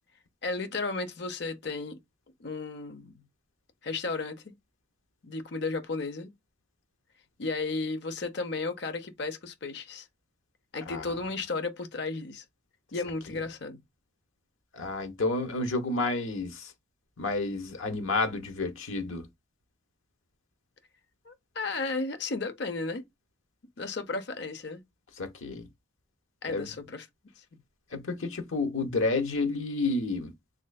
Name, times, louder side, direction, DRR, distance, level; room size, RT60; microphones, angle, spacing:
voice 1, 0.4-2.0 2.4-3.2 3.8-4.5 5.2-6.3 7.4-10.1 10.7-12.4 12.9-13.8 21.2-23.0 23.8-24.8 26.4-27.1 27.4-27.6, left 3 dB, 55° left, 0.7 m, -34 dB
voice 2, 14.7-16.7 17.2-19.3 25.2-25.6 26.5-26.7 27.9-30.3, left 3 dB, 85° left, 0.9 m, -30 dB
3.8 x 3.2 x 2.2 m
head